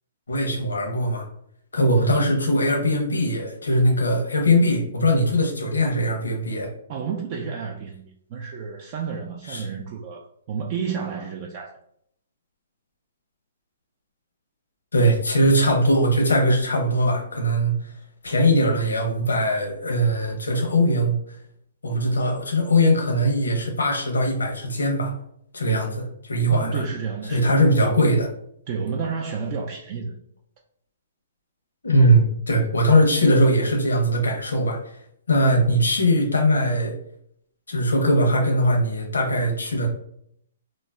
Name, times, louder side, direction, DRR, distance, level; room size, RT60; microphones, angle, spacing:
voice 1, 0.3-1.2 1.7-6.7 9.5-9.7 14.9-17.7 18.2-21.1 21.8-25.1 25.5-26.8 27.3-28.3 31.8-34.8 35.3-36.9 37.7-39.9, equal, 90° left, 0.7 m, -20 dB
voice 2, 6.9-11.8 26.5-28.1 28.7-30.1, right 6 dB, 40° right, 0.3 m, -31 dB
2.3 x 2.0 x 3.4 m
hypercardioid pair, 140°, 0 cm